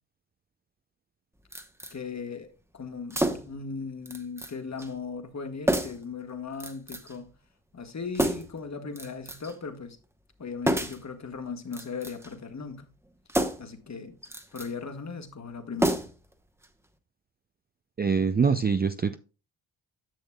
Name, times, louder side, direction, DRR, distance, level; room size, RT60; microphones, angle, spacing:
sound 1, 1.5-2.0 3.1-3.6 4.1-4.5 4.8-4.9 5.7-6.1 6.6-7.2 8.1-8.6 9.0-9.6 10.6-11.1 11.7-12.3 13.3-13.8 14.2-14.7 15.8-16.3 16.6-16.7, right 1 dB, 5° right, 1.0 m, -29 dB
voice 1, 1.9-7.3 7.7-10.0 10.4-12.9 13.6-14.2 14.5-16.1, left 5 dB, 35° left, 1.4 m, -38 dB
voice 2, 18.0-19.1, right 5 dB, 20° right, 0.4 m, -24 dB
10.5 x 6.4 x 2.3 m
supercardioid pair, 50°, 48 cm